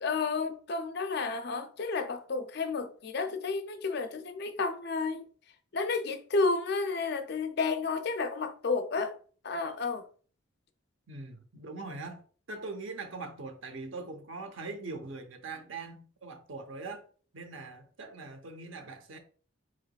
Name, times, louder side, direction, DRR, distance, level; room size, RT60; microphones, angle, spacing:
voice 1, 0.0-5.2 5.7-9.2 9.4-10.1, left 4 dB, 50° left, 0.5 m, -31 dB
voice 2, 11.1-12.2 12.5-17.0 17.3-19.2, right 3 dB, 70° right, 0.8 m, -42 dB
4.7 x 3.9 x 2.3 m
head